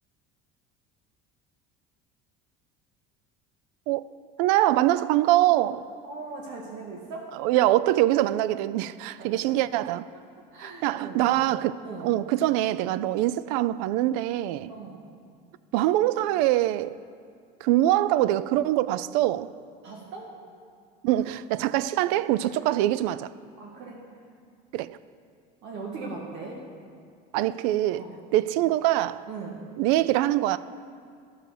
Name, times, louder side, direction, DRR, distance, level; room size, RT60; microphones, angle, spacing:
voice 1, 4.4-5.9 7.4-10.1 10.6-14.7 15.7-17.0 17.6-19.5 21.0-23.3 24.7-25.0 27.3-28.1 28.3-29.2 29.8-30.6, right 14 dB, 80° right, 0.4 m, -24 dB
voice 2, 6.0-7.4 9.2-9.4 10.5-11.4 11.8-12.1 14.7-15.0 19.8-20.4 23.6-24.0 25.6-26.6 27.9-28.2 29.3-29.6, right 4 dB, 60° right, 1.7 m, -39 dB
12.5 x 6.3 x 6.6 m
cardioid pair, 135°, 20 cm